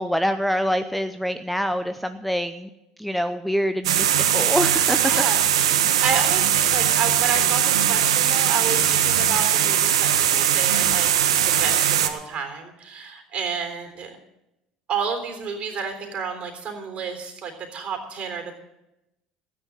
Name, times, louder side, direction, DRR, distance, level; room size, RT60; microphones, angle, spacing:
voice 1, 0.0-2.7 3.0-5.0, equal, ahead, 9 dB, 0.7 m, -25 dB
sound 1, 3.8-12.1, right 10 dB, 80° right, 0.9 m, -20 dB
voice 2, 5.0-11.1 11.5-14.2 14.9-18.6, right 6 dB, 45° right, 5 dB, 3.5 m, -31 dB
13.5 x 10.0 x 6.5 m, 0.89 s
hypercardioid pair, 70°, 3 cm